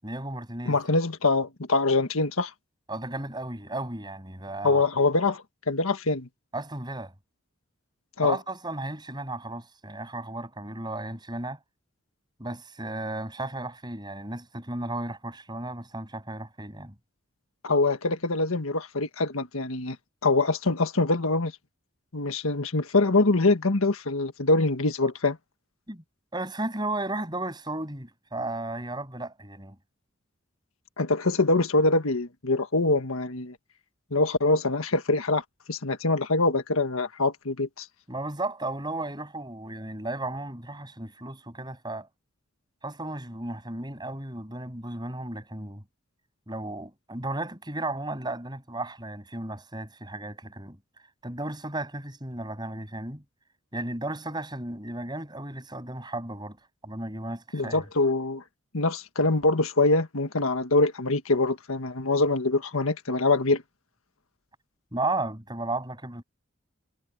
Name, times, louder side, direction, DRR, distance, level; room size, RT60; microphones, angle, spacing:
voice 1, 0.0-0.8 2.9-4.8 6.5-7.1 8.2-11.6 12.4-16.9 25.9-26.0 26.3-29.8 38.1-42.1 42.8-45.8 46.5-50.8 51.2-53.2 53.7-56.6 56.8-57.8 64.9-66.2, right 2 dB, 20° right, 7.9 m, -34 dB
voice 2, 0.6-2.5 4.6-6.3 8.2-8.4 17.6-20.0 20.2-21.5 22.1-25.4 31.0-33.6 34.1-35.4 35.7-37.9 57.5-58.4 58.7-63.6, left 3 dB, 85° left, 1.6 m, -24 dB
head